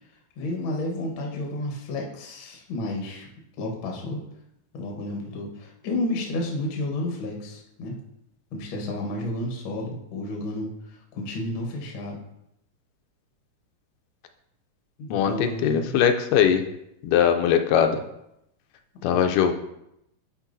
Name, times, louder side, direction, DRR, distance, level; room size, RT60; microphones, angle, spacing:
voice 1, 0.4-3.3 3.6-4.2 4.7-7.9 8.5-12.2 15.0-16.0 19.0-19.3, left 1 dB, 60° left, 0 dB, 1.3 m, -31 dB
voice 2, 15.1-16.6 17.0-18.0 19.0-19.5, left 8 dB, 85° left, 6 dB, 2.1 m, -21 dB
10.0 x 4.6 x 2.6 m, 0.80 s
omnidirectional pair, 3.8 m